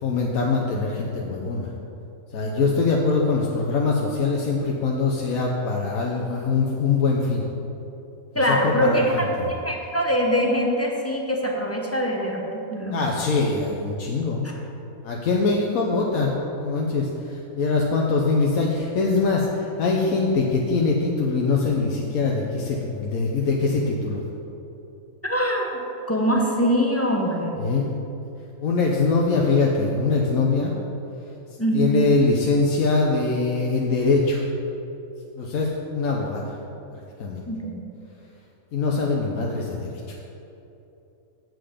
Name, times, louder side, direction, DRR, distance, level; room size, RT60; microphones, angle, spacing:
voice 1, 0.0-1.7 2.3-7.4 8.5-9.3 12.9-14.5 15.0-16.3 16.6-24.2 27.6-27.9 28.6-30.7 31.7-34.4 35.4-36.5 36.9-37.4 38.7-40.1, left 4 dB, 75° left, -2 dB, 1.2 m, -23 dB
voice 2, 8.3-13.0 25.2-25.7 26.1-27.6 31.6-32.0 37.5-37.8, equal, 15° left, -1 dB, 0.7 m, -23 dB
7.7 x 7.7 x 5.0 m, 3.0 s
omnidirectional pair, 1.5 m